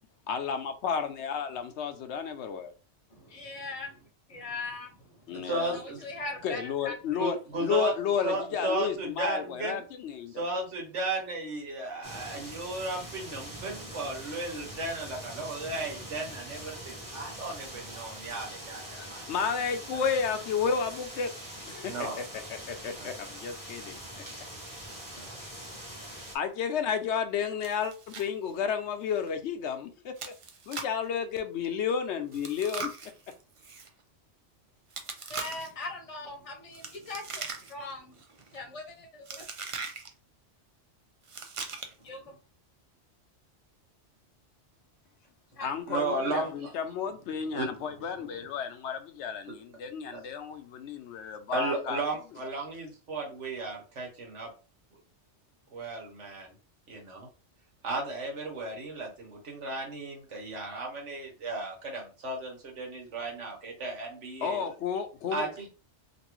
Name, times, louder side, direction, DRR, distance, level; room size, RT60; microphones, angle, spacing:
voice 1, 0.3-2.7 5.3-5.8 6.4-10.4 19.0-21.3 21.7-22.1 22.7-24.0 26.3-30.3 30.7-32.9 45.6-52.0 64.4-65.5, left 7 dB, 75° left, 0.9 m, -32 dB
voice 2, 3.1-3.9 4.3-4.9 6.0-7.3 35.3-38.2 38.5-39.4 42.0-42.3 45.6-45.7, left 3 dB, 35° left, 0.8 m, -40 dB
voice 3, 5.4-6.0 7.2-7.9 8.2-9.8 10.3-18.8 19.1-19.2 21.8-22.4 23.0-23.1 25.1-25.4 45.9-46.7 47.5-47.7 50.1-50.2 51.5-54.5 55.7-56.5 56.9-57.3 57.8-64.6 65.3-65.7, right 2 dB, 80° right, 1.5 m, -35 dB
sound 1, 12.0-26.4, right 1 dB, 20° right, 0.9 m, -43 dB
Chewing mastication, 27.6-28.3 28.6-28.7 29.2-29.3 30.2-31.0 32.3-33.9 34.9-35.8 36.7-37.9 38.2-38.6 39.3-40.1 41.2-42.1, right 4 dB, 55° right, 0.3 m, -40 dB
2.9 x 2.6 x 3.0 m
omnidirectional pair, 1.2 m